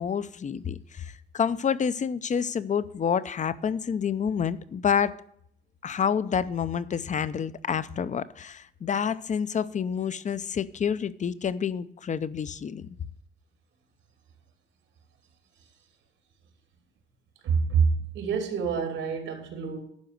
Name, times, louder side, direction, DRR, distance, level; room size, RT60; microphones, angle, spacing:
voice 1, 0.0-5.1 5.8-12.9, left 7 dB, 40° left, 0.6 m, -28 dB
voice 2, 17.4-19.8, right 5 dB, 85° right, 2.9 m, -26 dB
11.5 x 4.8 x 7.7 m
cardioid pair, 90°, 20 cm